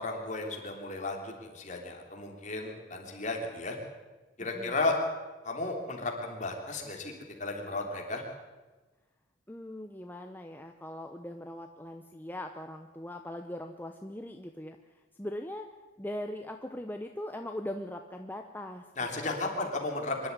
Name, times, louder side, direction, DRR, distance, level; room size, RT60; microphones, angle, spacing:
voice 1, 0.0-3.8 4.4-5.0 5.4-7.1 7.4-8.2 19.0-20.3, left 2 dB, 40° left, 2 dB, 3.5 m, -34 dB
voice 2, 4.4-4.8 9.5-14.8 15.2-15.7 16.0-18.8 19.2-19.7, left 1 dB, 10° left, 5 dB, 0.8 m, -40 dB
24.5 x 11.5 x 9.8 m, 1.3 s
head